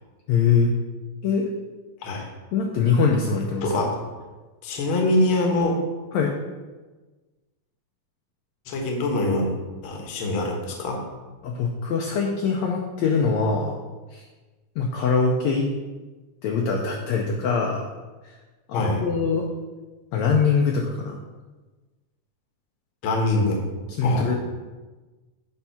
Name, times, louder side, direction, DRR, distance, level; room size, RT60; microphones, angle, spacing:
voice 1, 0.3-0.7 1.2-1.5 2.5-3.8 6.1-6.3 11.4-13.7 14.1-14.2 14.8-15.7 16.4-17.8 18.7-19.5 20.1-21.2 24.0-24.4, left 5 dB, 75° left, 1 dB, 1.7 m, -23 dB
voice 2, 3.6-3.9 4.6-5.7 8.7-9.5 9.8-11.0 18.7-19.0 23.0-23.6 24.0-24.3, left 2 dB, 60° left, 1 dB, 1.5 m, -24 dB
8.7 x 3.6 x 5.6 m, 1.2 s
omnidirectional pair, 3.8 m